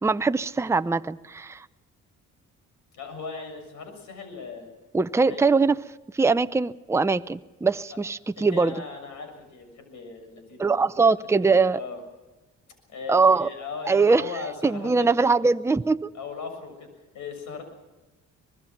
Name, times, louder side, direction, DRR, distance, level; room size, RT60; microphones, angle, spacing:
voice 1, 0.0-1.7 4.9-5.7 6.1-8.7 10.6-11.8 13.1-13.5 13.9-14.2 14.6-16.1, right 4 dB, 10° right, 12 dB, 0.6 m, -22 dB
voice 2, 2.9-4.7 5.3-5.4 8.4-10.9 11.3-12.0 12.9-15.4 16.1-16.9 17.1-17.6, left 5 dB, 75° left, 6 dB, 6.8 m, -38 dB
24.0 x 20.5 x 5.9 m, 1.1 s
cardioid pair, 90°, 30 cm